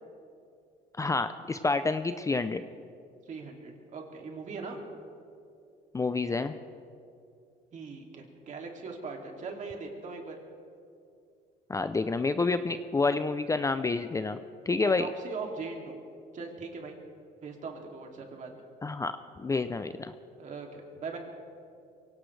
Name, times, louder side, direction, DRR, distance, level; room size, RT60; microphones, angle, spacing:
voice 1, 1.0-2.6 5.9-6.5 11.7-14.4 14.7-15.1 18.8-19.1 19.4-20.1, left 3 dB, 20° left, 11 dB, 0.5 m, -28 dB
voice 2, 3.3-4.8 7.7-10.4 14.8-16.0 16.3-17.0 17.4-18.6 20.4-21.2, right 4 dB, 45° right, 1 dB, 2.6 m, -40 dB
23.5 x 17.5 x 3.3 m, 2.5 s
cardioid pair, 110°, 17 cm